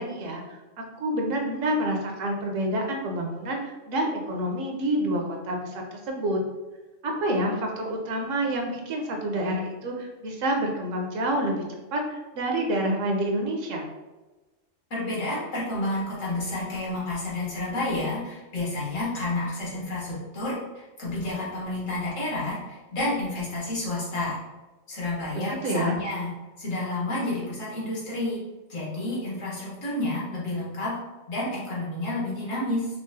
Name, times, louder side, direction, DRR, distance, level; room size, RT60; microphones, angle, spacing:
voice 1, 0.0-6.4 7.0-11.6 11.9-13.9 25.3-26.0, right 1 dB, 75° right, 1 dB, 1.0 m, -28 dB
voice 2, 14.9-24.4 24.9-26.3 26.6-28.4 28.7-31.0 31.3-32.9, left 2 dB, 80° left, -6 dB, 1.5 m, -30 dB
4.7 x 2.0 x 2.6 m, 1.2 s
omnidirectional pair, 1.3 m